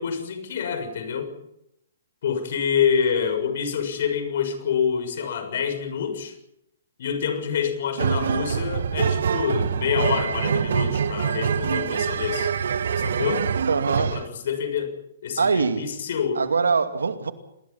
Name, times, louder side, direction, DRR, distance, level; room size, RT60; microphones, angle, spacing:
voice 1, 0.0-1.3 2.2-6.3 7.0-12.5 13.0-13.5 13.9-16.4, left 7 dB, 60° left, 6.8 m, -27 dB
sound 1, 8.0-14.3, right 7 dB, 70° right, 1.5 m, -25 dB
voice 2, 13.7-14.1 15.4-15.9 16.3-17.3, right 5 dB, 90° right, 2.4 m, -22 dB
27.5 x 21.0 x 5.8 m
hypercardioid pair, 135°, 0 cm